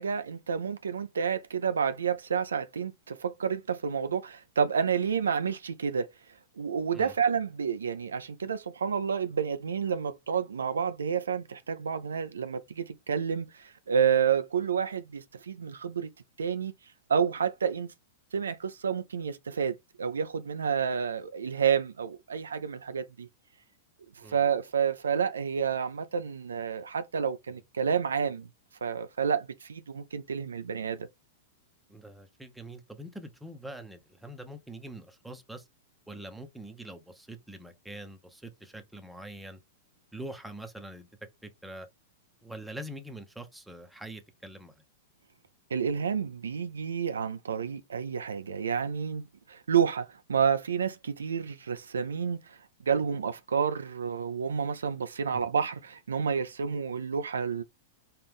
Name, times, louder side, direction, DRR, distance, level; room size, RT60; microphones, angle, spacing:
voice 1, 0.0-6.1 6.6-16.1 16.4-16.7 17.1-17.9 18.3-23.3 24.2-28.5 28.8-31.1 45.7-52.6 52.9-57.6, right 7 dB, 85° right, 0.4 m, -29 dB
voice 2, 31.9-35.7 36.1-39.6 40.1-41.1 41.4-41.9 42.4-44.8 55.3-55.4, right 1 dB, 5° right, 0.8 m, -44 dB
4.4 x 2.5 x 3.6 m
hypercardioid pair, 110°, 0 cm